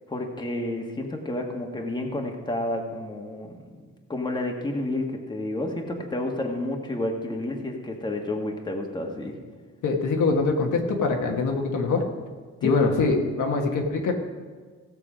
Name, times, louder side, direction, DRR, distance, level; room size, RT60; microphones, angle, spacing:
voice 1, 0.1-9.4 12.6-12.7, left 1 dB, 15° left, 1 dB, 1.5 m, -30 dB
voice 2, 9.8-12.0 12.6-14.2, left 4 dB, 75° left, 1 dB, 1.6 m, -23 dB
16.0 x 6.8 x 5.0 m, 1.5 s
cardioid pair, 110°, 30 cm